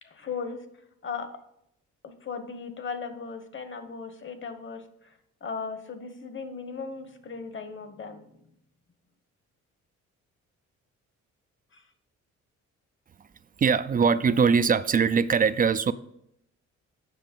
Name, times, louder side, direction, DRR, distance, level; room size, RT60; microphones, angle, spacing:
voice 1, 0.0-0.6 1.0-1.3 2.0-8.3 11.7-11.8, left 5 dB, 40° left, 9 dB, 1.2 m, -37 dB
voice 2, 13.6-15.9, right 6 dB, 30° right, 14 dB, 0.4 m, -22 dB
7.7 x 6.0 x 5.2 m, 0.76 s
cardioid pair, 90°, 30 cm